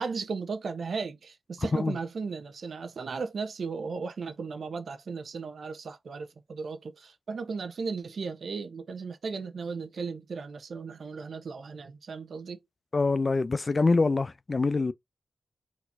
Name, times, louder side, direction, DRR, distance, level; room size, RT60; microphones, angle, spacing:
voice 1, 0.0-12.6, right 4 dB, 70° right, 1.1 m, -36 dB
voice 2, 1.6-2.0 12.9-14.9, left 3 dB, 45° left, 0.5 m, -25 dB
4.4 x 4.1 x 2.7 m
cardioid pair, 45°, 0 cm